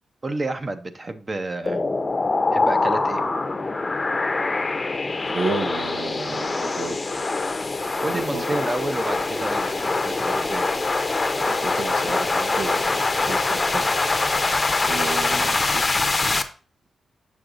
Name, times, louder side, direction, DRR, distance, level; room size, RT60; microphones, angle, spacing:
voice 1, 0.2-1.8 2.5-3.2 8.0-10.7, right 2 dB, 30° right, 10 dB, 0.7 m, -30 dB
sound 1, 1.7-16.4, left 3 dB, 25° left, 0.6 m, -24 dB
voice 2, 5.3-7.0 8.1-8.6 11.4-13.9 14.8-15.9, right 3 dB, 75° right, 4 dB, 1.0 m, -32 dB
7.0 x 6.4 x 2.5 m, 0.38 s
wide cardioid pair, 110°, 0 cm